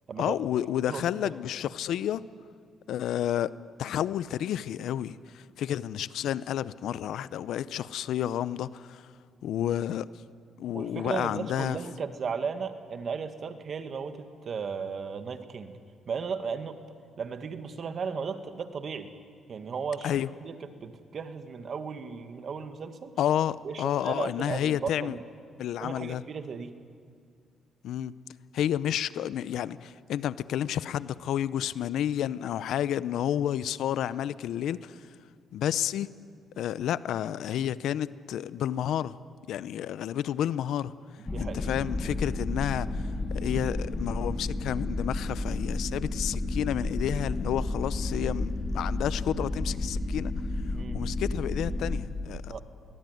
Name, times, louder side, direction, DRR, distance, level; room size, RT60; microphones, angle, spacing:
voice 1, 0.2-2.2 2.9-3.5 3.8-9.1 9.4-10.1 10.6-11.8 20.0-20.3 23.2-25.1 25.6-26.2 27.8-28.2 28.5-35.1 35.5-36.1 36.6-39.2 39.5-40.9 41.4-50.3 50.7-52.4, left 10 dB, 75° left, 17 dB, 0.7 m, -30 dB
voice 2, 0.9-1.3 10.7-15.8 16.1-16.8 17.2-19.1 19.5-20.2 20.4-23.1 23.6-25.2 25.8-26.7 41.2-41.7 50.7-51.0 52.5-52.6, right 5 dB, 50° right, 9 dB, 1.8 m, -35 dB
sound 1, 41.3-52.0, left 2 dB, 25° left, 2.4 m, -31 dB
23.5 x 19.0 x 9.4 m, 2.2 s
cardioid pair, 90°, 0 cm